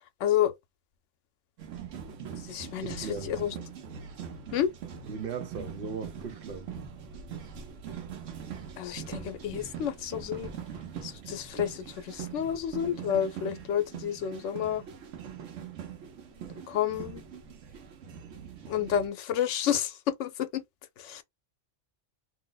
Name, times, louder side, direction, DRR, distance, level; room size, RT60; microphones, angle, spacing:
voice 1, 0.2-0.5 2.5-3.5 4.5-4.7 8.8-10.5 11.0-14.8 16.7-17.2 18.7-20.6 21.0-21.2, left 10 dB, 85° left, 0.9 m, -30 dB
sound 1, 1.6-19.1, right 7 dB, 90° right, 1.1 m, -42 dB
voice 2, 2.8-3.5 5.1-6.7, right 5 dB, 55° right, 0.8 m, -38 dB
2.7 x 2.0 x 3.8 m
omnidirectional pair, 1.2 m